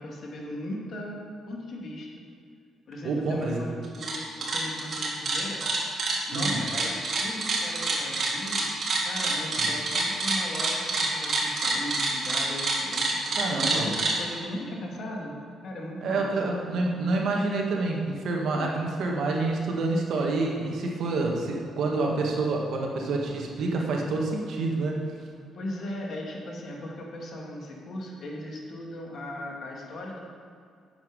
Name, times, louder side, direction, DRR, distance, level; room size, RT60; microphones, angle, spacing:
voice 1, 0.0-2.1 2.9-5.6 6.3-8.7 9.0-13.3 13.7-15.4 15.6-16.3 25.5-30.2, left 1 dB, 55° left, -1 dB, 2.2 m, -38 dB
voice 2, 3.0-3.6 6.3-6.6 9.6-9.7 13.4-13.9 16.0-25.0, right 3 dB, 70° right, 0 dB, 1.7 m, -28 dB
sound 1, 3.8-4.2 4.4-14.1, right 3 dB, 50° right, 2.4 m, -27 dB
9.5 x 7.4 x 5.4 m, 2.3 s
cardioid pair, 90°, 0 cm